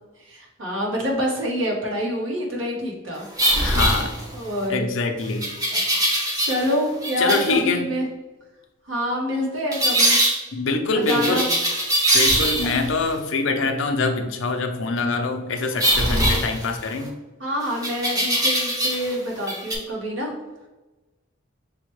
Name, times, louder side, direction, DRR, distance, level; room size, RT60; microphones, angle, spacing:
voice 1, 0.2-3.3 3.6-3.8 4.3-4.8 6.4-8.1 8.9-10.2 10.9-11.5 16.2-16.4 17.4-20.3, equal, 80° right, -1 dB, 1.1 m, -26 dB
sound 1, 3.4-4.6 5.4-6.7 7.0-7.6 9.7-10.4 11.1-12.9 15.8-17.1 17.8-19.1 19.4-19.7, right 1 dB, 20° right, 0.7 m, -22 dB
voice 2, 3.6-4.1 4.7-5.5 7.2-7.9 10.5-11.5 12.1-17.1, left 3 dB, 75° left, 6 dB, 0.5 m, -24 dB
6.0 x 2.1 x 3.1 m, 1.1 s
head